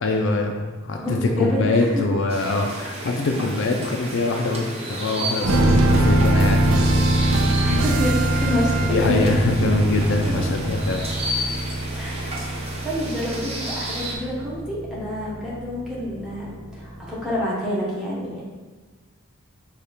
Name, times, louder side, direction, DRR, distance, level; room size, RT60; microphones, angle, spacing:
voice 1, 0.0-7.0 7.6-7.7 8.8-11.1, left 2 dB, 55° left, 3 dB, 0.4 m, -23 dB
voice 2, 1.0-2.0 7.6-9.6 10.3-10.4 11.9-18.4, left 1 dB, 5° right, -7 dB, 1.0 m, -28 dB
sound 1, 2.3-14.2, right 1 dB, 30° right, 0.6 m, -32 dB
sound 2, 5.4-17.0 17.3-17.4, right 1 dB, 90° right, 1.1 m, -23 dB
sound 3, 5.5-9.4, right 4 dB, 70° right, 0.3 m, -28 dB
4.9 x 2.4 x 4.2 m, 1.3 s
head